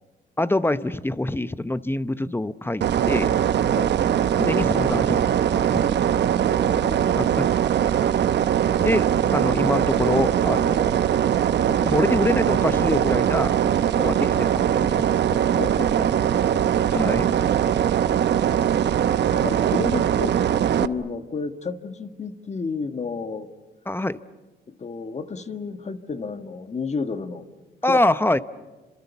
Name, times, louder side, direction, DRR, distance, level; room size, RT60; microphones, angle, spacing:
voice 1, 0.4-3.4 4.4-5.8 7.2-7.5 8.0-8.1 8.8-11.0 11.7-13.6 14.0-15.1 16.9-17.3 23.9-24.2 27.8-28.4, left 1 dB, 10° left, 13 dB, 0.8 m, -25 dB
sound 1, 2.8-20.9, right 9 dB, 60° right, 0.9 m, -21 dB
voice 2, 6.2-7.1 14.0-14.1 15.3-16.9 18.4-20.4 20.8-23.5 24.7-27.5 27.8-28.0, left 4 dB, 35° left, 8 dB, 1.5 m, -32 dB
28.5 x 26.5 x 7.0 m, 1.2 s
cardioid pair, 90°, 20 cm